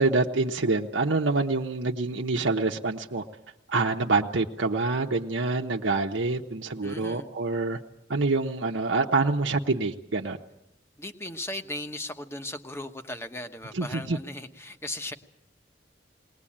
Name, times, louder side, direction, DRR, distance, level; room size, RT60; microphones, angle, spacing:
voice 1, 0.0-3.2 3.7-7.8 8.1-10.4 13.7-14.2, right 3 dB, 85° right, 2 dB, 1.0 m, -26 dB
voice 2, 6.8-7.3 11.0-15.1, left 1 dB, 15° left, 7 dB, 1.1 m, -37 dB
21.0 x 19.5 x 8.7 m, 0.83 s
head